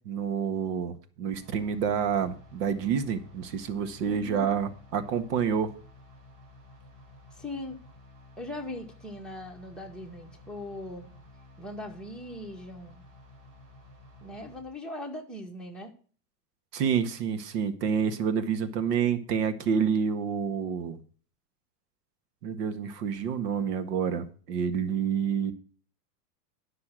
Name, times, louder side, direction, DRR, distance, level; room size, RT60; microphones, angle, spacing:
voice 1, 0.0-5.7 16.7-21.0 22.4-25.5, right 7 dB, 70° right, 10 dB, 1.6 m, -28 dB
sound 1, 1.3-14.6, left 2 dB, 40° right, 4.4 m, -53 dB
voice 2, 4.1-4.5 7.3-7.8 8.4-11.1 11.6-13.0 14.2-15.9, left 1 dB, ahead, -1 dB, 1.9 m, -40 dB
12.0 x 6.1 x 6.0 m, 0.42 s
supercardioid pair, 140°, 48 cm